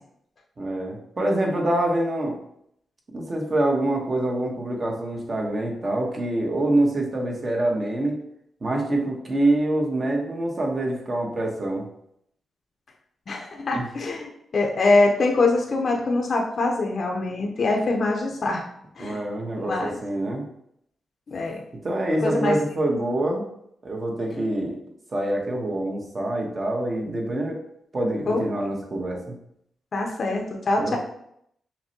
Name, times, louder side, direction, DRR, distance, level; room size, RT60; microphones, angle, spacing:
voice 1, 0.6-2.4 3.1-8.2 8.6-11.9 13.7-13.9 19.0-20.4 21.8-23.4 23.8-24.8 25.1-27.6 27.9-29.4 30.8-31.0, right 1 dB, 40° right, 0 dB, 1.0 m, -25 dB
voice 2, 13.3-18.6 19.0-19.2 19.6-20.0 21.3-21.6 22.2-22.6 28.3-28.4 29.9-31.0, left 3 dB, 55° left, 1 dB, 0.6 m, -23 dB
5.7 x 2.1 x 2.8 m, 0.73 s
cardioid pair, 70°, 0 cm